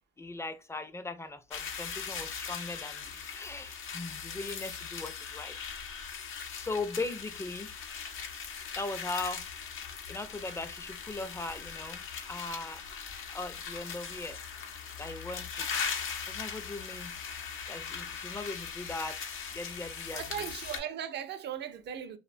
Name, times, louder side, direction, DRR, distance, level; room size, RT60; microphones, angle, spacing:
voice 1, 0.2-5.5 6.3-7.7 8.8-9.4 10.1-12.8 13.3-14.4 15.0-15.7 16.3-17.1 17.7-19.2 19.5-20.5, left 3 dB, 15° left, 0.4 m, -39 dB
sound 1, 1.5-20.8, left 6 dB, 85° left, 0.6 m, -40 dB
voice 2, 20.1-22.2, right 9 dB, 60° right, 0.5 m, -38 dB
2.6 x 2.2 x 2.3 m
cardioid pair, 90°, 20 cm